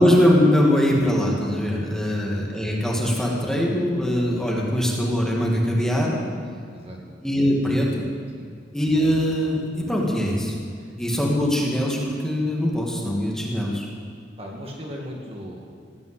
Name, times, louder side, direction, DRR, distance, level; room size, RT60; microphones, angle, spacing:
voice 1, 0.0-6.2 7.2-8.0 8.7-10.5 11.0-13.9, equal, 5° left, -3 dB, 2.4 m, -22 dB
voice 2, 14.4-15.7, equal, 35° right, -1 dB, 2.2 m, -38 dB
17.0 x 9.2 x 8.4 m, 2.2 s
head